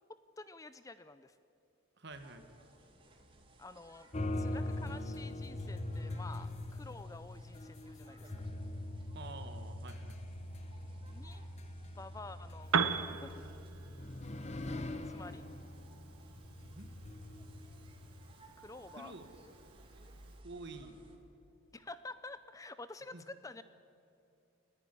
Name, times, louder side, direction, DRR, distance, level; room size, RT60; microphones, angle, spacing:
voice 1, 0.1-1.4 3.6-4.1 4.4-8.5 11.1-11.4 11.8-13.3 15.1-15.4 18.6-19.2 21.7-23.6, left 3 dB, 15° left, 13 dB, 0.5 m, -50 dB
voice 2, 2.0-2.5 9.1-10.2 16.6-16.9 19.0-19.3 20.4-21.0 23.1-23.2, right 2 dB, 55° right, 8 dB, 1.7 m, -48 dB
sound 1, 2.1-21.2, right 2 dB, 25° right, 2.1 m, -61 dB
sound 2, 4.1-18.3, left 1 dB, 30° left, 0.9 m, -42 dB
Piano, 12.6-20.4, right 5 dB, 80° right, 1.0 m, -40 dB
29.5 x 11.0 x 9.8 m, 2.6 s
head